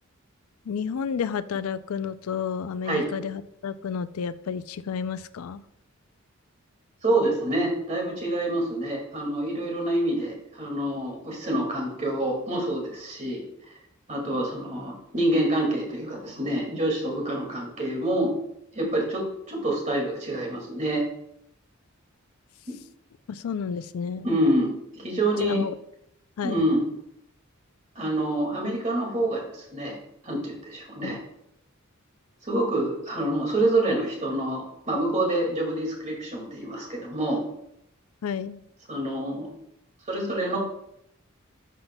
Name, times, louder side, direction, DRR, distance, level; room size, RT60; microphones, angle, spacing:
voice 1, 0.7-5.6 23.3-24.3 25.4-25.7 26.4-26.7 31.0-31.2 38.2-38.6, left 7 dB, 85° left, 14 dB, 0.4 m, -31 dB
voice 2, 7.0-13.4 14.1-18.3 18.7-21.0 24.2-25.6 26.4-26.9 28.0-30.0 30.2-31.2 32.4-37.4 38.9-39.5 40.1-40.6, right 1 dB, 35° right, -1 dB, 2.1 m, -27 dB
11.0 x 5.6 x 2.2 m, 0.77 s
head